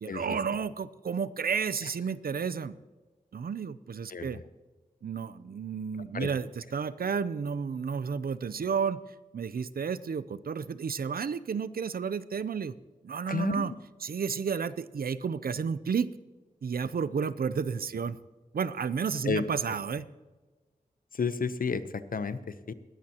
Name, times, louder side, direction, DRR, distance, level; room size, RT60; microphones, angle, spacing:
voice 1, 0.0-2.8 3.3-4.4 5.0-9.0 9.3-12.7 13.0-13.7 14.0-16.2 16.6-18.2 18.5-20.1, right 6 dB, 75° right, 16 dB, 0.5 m, -32 dB
voice 2, 4.1-4.4 5.9-6.3 13.3-13.7 19.2-19.5 21.1-22.7, left 5 dB, 65° left, 13 dB, 0.7 m, -32 dB
20.0 x 12.5 x 2.9 m, 1.3 s
wide cardioid pair, 70°, 15 cm